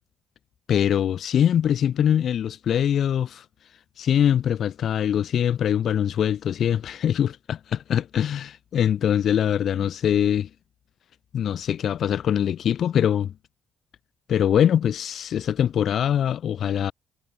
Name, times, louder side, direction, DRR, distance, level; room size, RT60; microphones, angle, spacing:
voice 1, 0.7-3.4 4.0-10.5 11.3-13.3 14.3-16.9, left 9 dB, 65° left, 0.7 m, -23 dB
cardioid pair, 90°, 0 cm